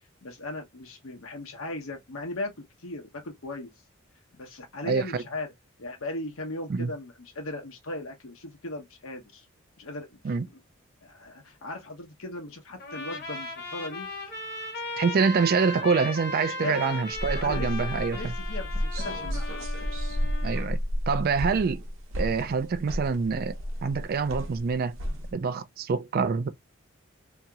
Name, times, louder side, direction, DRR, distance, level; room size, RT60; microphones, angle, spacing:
voice 1, 0.2-3.7 4.3-5.5 5.8-9.5 9.8-10.2 11.0-14.1 16.4-16.8 17.3-17.7 18.1-19.7, left 2 dB, 80° left, 1.0 m, -38 dB
voice 2, 4.8-5.2 6.7-6.9 10.2-10.5 15.0-18.3 20.4-20.8 21.1-21.8 22.2-25.0 25.3-26.5, right 5 dB, 45° right, 0.3 m, -26 dB
Trumpet, 12.8-20.7, left 2 dB, 50° left, 1.1 m, -37 dB
sound 1, 17.1-25.3, equal, 70° right, 0.8 m, -32 dB
2.8 x 2.8 x 2.4 m
head